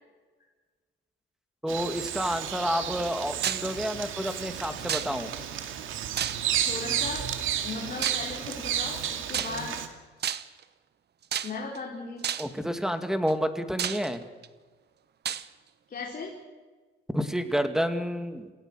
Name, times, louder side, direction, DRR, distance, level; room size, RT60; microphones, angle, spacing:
voice 1, 1.6-5.3 12.4-14.2 17.1-18.5, equal, 5° right, 8 dB, 2.4 m, -29 dB
Bird vocalization bird call bird song, 1.7-9.9, right 10 dB, 85° right, 2.3 m, -32 dB
sound 1, 3.4-3.7 4.9-5.4 6.2-6.7 8.0-8.3 9.3-9.8 10.2-10.6 11.3-11.8 12.2-12.6 13.3-13.4 13.8-14.5 15.2-15.5, right 9 dB, 55° right, 1.1 m, -31 dB
voice 2, 6.6-7.3 7.6-9.9 11.4-12.2 15.9-16.3, left 4 dB, 45° left, -2 dB, 5.0 m, -37 dB
28.0 x 17.0 x 6.5 m, 1.3 s
cardioid pair, 90°, 20 cm